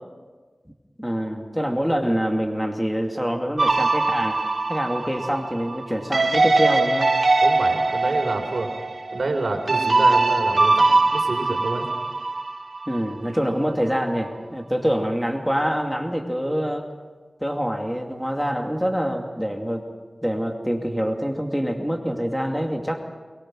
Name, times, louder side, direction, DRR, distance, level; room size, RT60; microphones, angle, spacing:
voice 1, 1.0-4.4 4.7-7.1 12.9-16.9 17.4-19.8 20.2-23.0, equal, ahead, 2 dB, 2.5 m, -25 dB
sound 1, 3.6-13.0, right 3 dB, 60° right, 1.2 m, -21 dB
voice 2, 7.4-8.7 9.1-11.9, right 2 dB, 80° right, 4 dB, 3.5 m, -28 dB
23.0 x 22.0 x 6.3 m, 1.4 s
wide cardioid pair, 60°, 0 cm